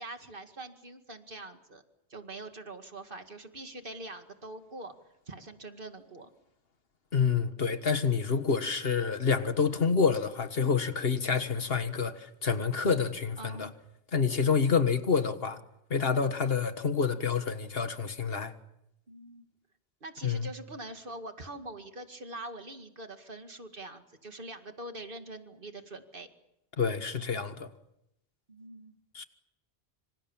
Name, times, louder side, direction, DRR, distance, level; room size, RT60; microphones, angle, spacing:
voice 1, 0.0-1.8 2.1-5.0 5.3-6.3 13.4-13.7 19.1-19.5 20.0-26.3 28.5-29.0, right 2 dB, 55° right, 2.3 m, -44 dB
voice 2, 7.1-13.7 14.1-15.6 15.9-18.5 20.2-20.5 26.8-27.7 29.1-29.2, left 5 dB, 60° left, 1.7 m, -28 dB
27.0 x 26.0 x 7.3 m
omnidirectional pair, 1.1 m